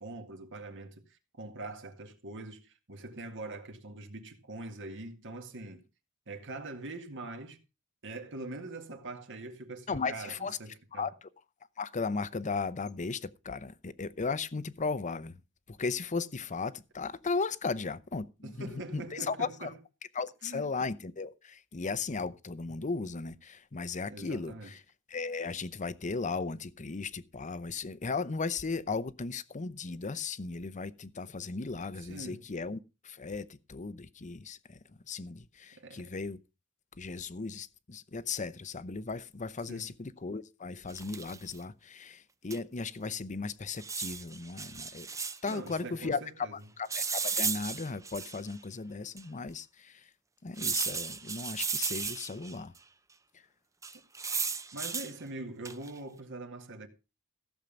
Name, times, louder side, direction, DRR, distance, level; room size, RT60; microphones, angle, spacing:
voice 1, 0.0-5.8 6.3-7.6 8.0-11.1 18.4-19.8 20.4-20.7 24.1-24.7 32.0-32.5 35.8-36.1 39.7-39.9 45.4-46.6 54.7-56.9, right 2 dB, 60° right, 1.9 m, -43 dB
voice 2, 9.9-10.6 10.9-11.1 11.8-15.4 15.7-19.7 20.2-24.8 25.1-32.8 33.0-34.8 35.1-36.4 37.0-45.1 45.4-50.1 50.4-52.7, left 4 dB, 35° left, 0.7 m, -36 dB
sound 1, 40.9-41.5 42.5-42.6 42.8-42.9 43.8-45.6 46.9-48.5 49.2-49.3 50.6-52.5 53.8-55.1 55.6-56.0, right 5 dB, 15° right, 0.6 m, -35 dB
15.5 x 7.3 x 5.3 m
head